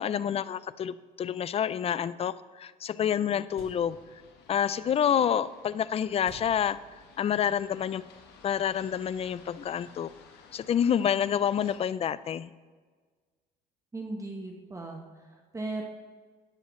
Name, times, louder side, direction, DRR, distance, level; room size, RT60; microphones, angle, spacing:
voice 1, 0.0-4.0 4.5-6.8 7.2-8.0 8.4-10.1 10.5-12.5, left 9 dB, 35° left, 17 dB, 0.4 m, -28 dB
sound 1, 3.5-11.8, left 5 dB, 80° left, 1.3 m, -56 dB
sound 2, 3.6-4.2 6.3-7.3, right 3 dB, 70° right, 1.3 m, -51 dB
voice 2, 13.9-15.8, right 2 dB, 20° right, 1 dB, 1.1 m, -37 dB
13.5 x 9.6 x 3.1 m, 1.5 s
cardioid pair, 110°, 17 cm